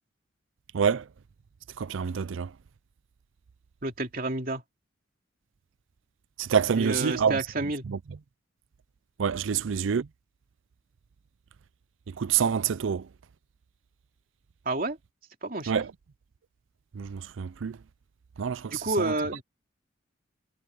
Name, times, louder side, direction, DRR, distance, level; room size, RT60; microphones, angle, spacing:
voice 1, 0.7-1.0 1.8-2.5 6.4-7.4 7.9-8.0 9.2-10.1 12.2-13.1 15.7-15.9 16.9-17.8 18.4-19.1, right 7 dB, 85° right, 0.5 m, -27 dB
voice 2, 3.8-4.6 6.8-7.9 9.5-9.6 14.6-15.0 15.4-15.8 18.7-19.4, right 2 dB, 45° right, 2.8 m, -30 dB
head